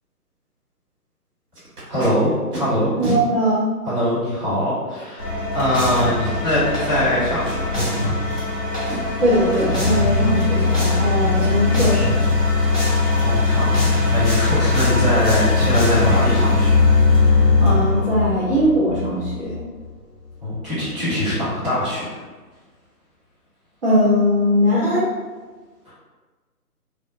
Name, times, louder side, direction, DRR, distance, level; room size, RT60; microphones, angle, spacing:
Packing tape duct tape, 1.5-2.1 2.5-2.6 3.0-3.2 4.0-4.1 7.4-7.8 8.3-8.5 8.8-9.1 9.5-9.9 10.5-11.1 11.3-11.8 12.2-12.3 12.6-13.0 16.0-16.1 16.4-16.6 17.0-17.1 17.4-17.7 17.9-18.0, right 2 dB, 70° right, 1.1 m, -33 dB
voice 1, 1.9-2.9 3.8-8.2 13.2-16.7 20.4-22.2, left 1 dB, 20° right, -14 dB, 1.3 m, -22 dB
voice 2, 3.0-3.6 9.2-12.2 17.6-19.6 23.8-25.0, equal, 40° right, -10 dB, 0.6 m, -20 dB
sound 1, 5.2-19.9, left 3 dB, 25° left, 0.6 m, -20 dB
2.5 x 2.2 x 2.4 m, 1.3 s
figure-of-eight pair, 145°, 47 cm